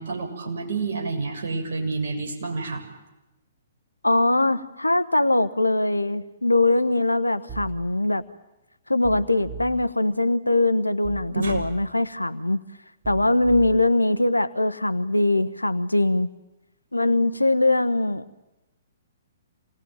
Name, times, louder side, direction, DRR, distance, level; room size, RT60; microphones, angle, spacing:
voice 1, 0.0-2.8 11.4-11.6, right 4 dB, 55° right, 1 dB, 7.2 m, -29 dB
voice 2, 4.0-8.2 8.9-12.6 13.1-16.3 16.9-18.2, left 2 dB, 85° left, 13 dB, 1.1 m, -22 dB
sound 1, 7.5-7.8 9.0-9.8 11.0-11.8 13.0-13.8, right 6 dB, 15° right, 3.7 m, -39 dB
27.0 x 20.0 x 9.3 m, 0.99 s
figure-of-eight pair, 120°, 0 cm